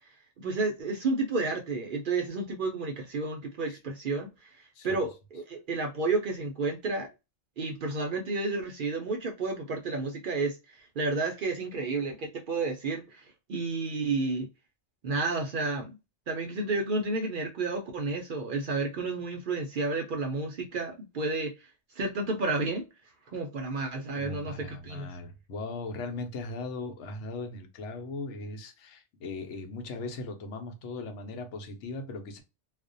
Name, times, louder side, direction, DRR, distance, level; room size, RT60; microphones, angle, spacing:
voice 1, 0.4-4.3 4.8-7.1 7.6-14.5 15.0-15.9 16.3-21.5 22.0-22.8 23.3-24.5 24.8-25.1, right 3 dB, 60° right, 0.6 m, -31 dB
voice 2, 4.8-5.1 24.1-32.4, left 2 dB, 85° left, 0.9 m, -38 dB
2.4 x 2.1 x 2.5 m
omnidirectional pair, 1.2 m